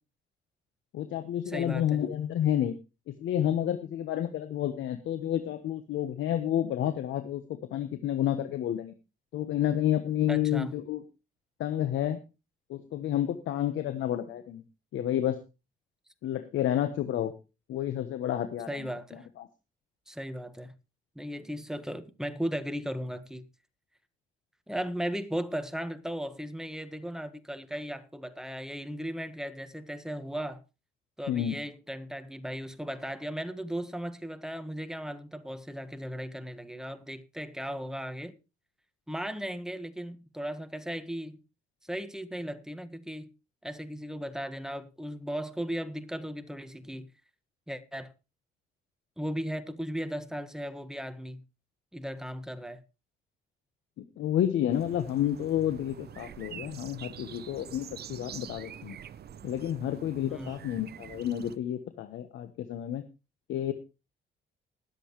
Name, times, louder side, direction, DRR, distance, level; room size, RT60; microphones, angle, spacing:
voice 1, 0.9-2.8 3.2-8.9 9.3-11.0 11.6-12.2 12.7-14.6 14.9-15.4 16.2-17.3 17.7-18.9 19.4-19.5 31.3-31.6 54.0-59.0 59.4-63.0 63.5-63.7, left 11 dB, 80° left, 1.2 m, -30 dB
voice 2, 1.5-2.0 10.3-10.7 18.7-19.3 20.1-20.7 21.1-23.4 24.7-30.6 31.2-38.4 39.1-41.4 41.8-43.3 43.6-47.1 47.7-48.1 49.2-51.4 51.9-52.8 60.3-60.5, equal, 5° right, 1.5 m, -36 dB
sound 1, 54.7-61.6, right 9 dB, 55° right, 0.8 m, -46 dB
20.5 x 7.9 x 3.2 m
cardioid pair, 90°, 20 cm